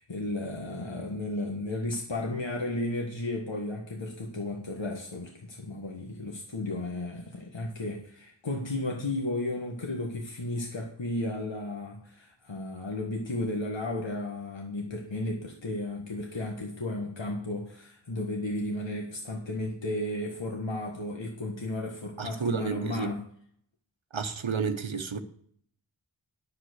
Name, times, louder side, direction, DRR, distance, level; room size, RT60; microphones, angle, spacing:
voice 1, 0.0-23.3, left 1 dB, 70° left, 1.6 m, -34 dB
voice 2, 22.2-23.1 24.1-25.2, right 5 dB, 80° right, 1.0 m, -31 dB
10.0 x 7.4 x 6.4 m
wide cardioid pair, 45°, 46 cm